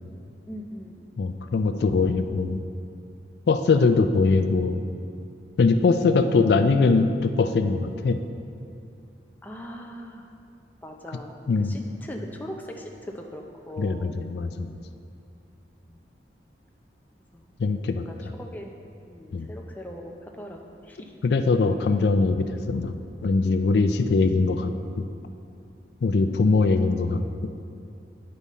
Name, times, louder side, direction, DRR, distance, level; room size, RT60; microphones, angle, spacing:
voice 1, 0.5-1.1 5.5-5.6 9.4-10.3 10.8-14.1 15.9-16.0 17.3-17.5 18.1-18.7 19.1-21.1, equal, 10° left, 1 dB, 0.5 m, -40 dB
voice 2, 1.2-2.6 3.5-4.8 5.6-8.2 11.5-11.8 13.8-14.7 17.6-18.0 19.3-19.5 21.2-22.9 23.2-24.7 25.0-25.1 26.0-27.2, left 4 dB, 70° left, 8 dB, 0.4 m, -22 dB
9.8 x 5.4 x 4.2 m, 2.5 s
head